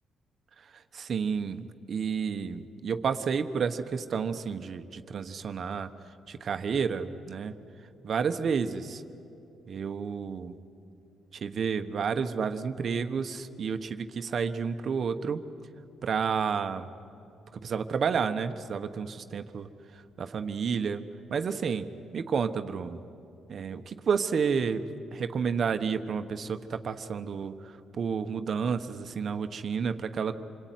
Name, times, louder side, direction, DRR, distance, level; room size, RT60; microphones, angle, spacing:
voice 1, 0.6-5.9 6.3-7.5 8.0-9.0 9.7-10.6 11.3-15.4 16.0-16.9 17.5-21.0 21.3-23.0 23.5-30.4, right 6 dB, 50° right, 9 dB, 1.2 m, -31 dB
27.0 x 22.0 x 9.4 m, 2.6 s
cardioid pair, 90°, 0 cm